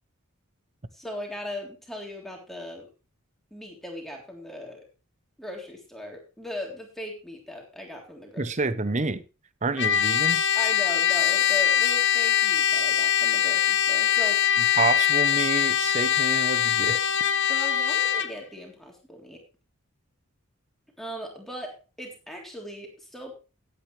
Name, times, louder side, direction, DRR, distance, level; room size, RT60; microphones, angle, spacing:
voice 1, 0.9-2.9 3.5-4.8 5.4-8.5 10.6-14.4 17.5-19.4 21.0-23.3, equal, ahead, 3.4 m, -38 dB
voice 2, 8.4-9.2 9.6-10.4 14.8-17.0, right 3 dB, 30° right, 0.8 m, -28 dB
Trumpet, 9.8-18.3, left 9 dB, 55° left, 1.1 m, -22 dB
16.5 x 9.1 x 3.3 m
head